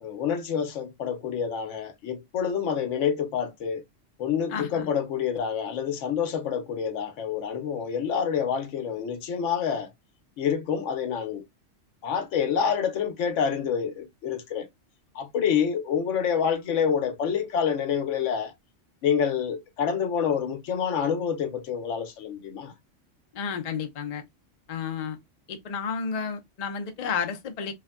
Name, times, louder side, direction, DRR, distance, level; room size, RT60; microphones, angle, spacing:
voice 1, 0.0-3.8 4.2-9.9 10.4-11.4 12.0-14.7 15.1-18.5 19.0-22.7, left 7 dB, 75° left, 0.9 m, -27 dB
voice 2, 4.5-4.9 23.3-24.2 24.7-25.2 25.5-27.7, left 6 dB, 55° left, 0.4 m, -31 dB
3.2 x 2.1 x 2.3 m
omnidirectional pair, 1.3 m